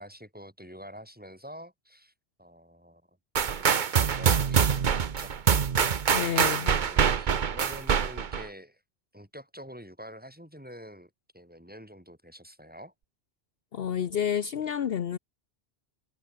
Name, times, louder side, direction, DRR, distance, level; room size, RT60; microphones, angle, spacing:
voice 1, 0.0-2.1 2.4-3.2 3.6-4.9 5.2-5.3 6.1-8.8 9.1-12.9, equal, 10° right, 6.2 m, -46 dB
sound 1, 3.4-8.5, right 7 dB, 50° right, 0.9 m, -25 dB
voice 2, 6.1-6.8 13.7-15.2, left 8 dB, 65° left, 1.0 m, -29 dB
omnidirectional pair, 1.1 m